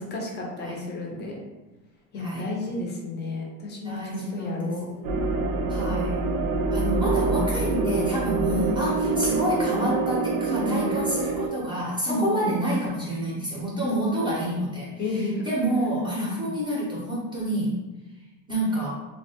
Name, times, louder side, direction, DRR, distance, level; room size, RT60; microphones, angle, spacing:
voice 1, 0.0-1.4 2.1-4.9 10.5-10.9 12.1-12.5 13.8-14.0 15.0-15.4 16.2-16.6, left 2 dB, 30° left, -1 dB, 0.6 m, -31 dB
voice 2, 2.2-2.6 3.8-5.2 5.7-6.2 6.7-17.8 18.5-18.9, right 1 dB, 15° right, -6 dB, 0.6 m, -28 dB
sound 1, 5.0-11.5, right 3 dB, 75° right, 0.6 m, -26 dB
3.1 x 2.2 x 2.7 m, 1.1 s
cardioid pair, 150°, 36 cm